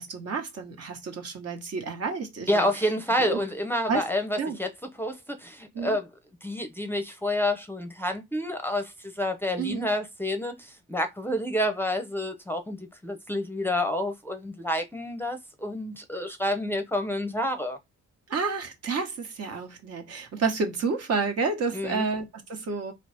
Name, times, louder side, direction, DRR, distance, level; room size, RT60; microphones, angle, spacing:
voice 1, 0.0-2.7 3.2-3.4 3.9-4.0 4.4-4.6 5.7-6.0 9.6-9.9 18.3-22.9, right 4 dB, 55° right, 1.3 m, -30 dB
voice 2, 2.5-4.7 5.0-6.1 6.4-17.8 21.7-22.1, left 1 dB, 5° left, 0.7 m, -29 dB
4.0 x 2.9 x 3.4 m
cardioid pair, 90°, 30 cm